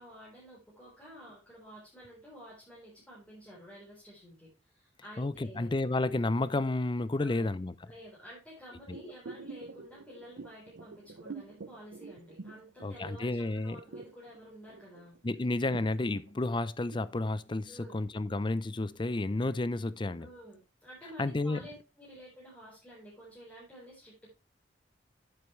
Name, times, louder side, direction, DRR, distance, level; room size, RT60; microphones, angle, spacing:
voice 1, 0.0-5.7 7.2-7.5 7.8-15.1 17.7-18.0 20.2-24.3, equal, 5° left, 3.9 m, -51 dB
voice 2, 5.2-7.7 8.9-9.0 12.8-13.8 15.2-20.3 21.2-21.6, left 2 dB, 25° left, 0.5 m, -31 dB
sound 1, 8.9-13.3 13.6-17.1 17.5-17.6, right 4 dB, 90° right, 0.6 m, -47 dB
9.6 x 8.0 x 3.2 m
head